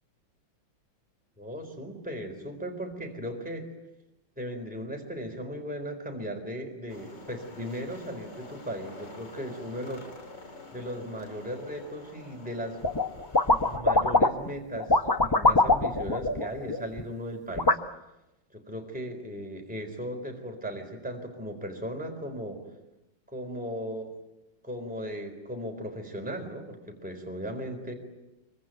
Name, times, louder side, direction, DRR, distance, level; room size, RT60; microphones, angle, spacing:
voice 1, 1.4-3.7 4.4-10.1 10.7-12.8 13.6-17.8 18.5-22.6 23.3-24.1 24.6-27.9, equal, 5° right, 3 dB, 4.1 m, -37 dB
sound 1, 6.9-13.8, left 2 dB, 60° left, 3.6 m, -47 dB
sound 2, 12.8-13.1 13.3-14.5 14.8-17.0 17.6-17.7, left 2 dB, 25° left, 0.5 m, -23 dB
26.0 x 24.5 x 9.3 m, 0.93 s
omnidirectional pair, 2.1 m